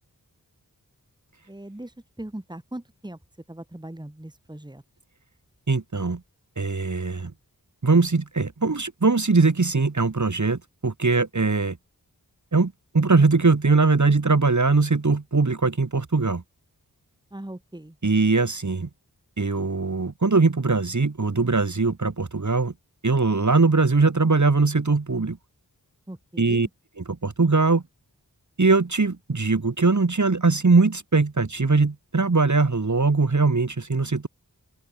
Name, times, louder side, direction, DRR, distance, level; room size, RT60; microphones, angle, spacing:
voice 1, 1.5-3.2 3.5-4.8 17.3-18.0 26.1-26.7, right 1 dB, 10° right, 1.9 m, -39 dB
voice 2, 5.7-6.2 6.6-7.3 7.8-11.8 12.5-16.4 18.0-18.9 19.4-22.7 23.0-25.4 26.4-26.7 27.2-27.8 28.6-34.3, right 3 dB, 50° right, 1.7 m, -21 dB
open air
wide cardioid pair, 60°, 38 cm